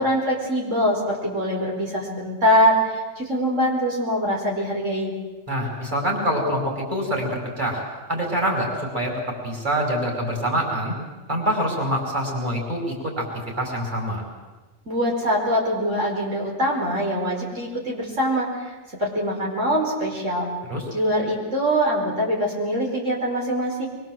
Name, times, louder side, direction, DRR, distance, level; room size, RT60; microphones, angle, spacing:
voice 1, 0.0-5.1 14.9-20.5 20.9-23.9, equal, 65° right, -2 dB, 5.1 m, -23 dB
voice 2, 5.5-7.8 8.1-9.1 9.4-11.0 11.3-13.3 13.6-14.2 20.7-20.8, equal, 35° right, 0 dB, 5.3 m, -25 dB
25.0 x 23.5 x 7.7 m, 1.2 s
omnidirectional pair, 1.4 m